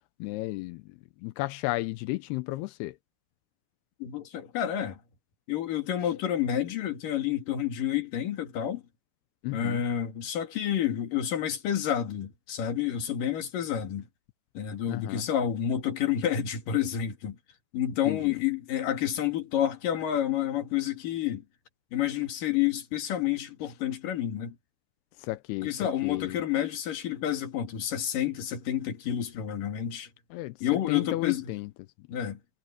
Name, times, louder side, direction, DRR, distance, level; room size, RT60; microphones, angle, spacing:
voice 1, 0.2-0.9 1.2-3.0 9.4-9.8 14.9-15.3 18.1-18.3 25.2-25.7 26.0-26.4 30.3-30.6 30.9-31.7, left 19 dB, 90° left, 2.7 m, -33 dB
voice 2, 4.0-5.0 5.5-8.8 9.5-14.1 14.6-17.4 17.7-21.4 21.9-24.6 25.6-30.1 30.6-31.5 32.1-32.4, left 10 dB, 60° left, 3.9 m, -29 dB
omnidirectional pair, 4.5 m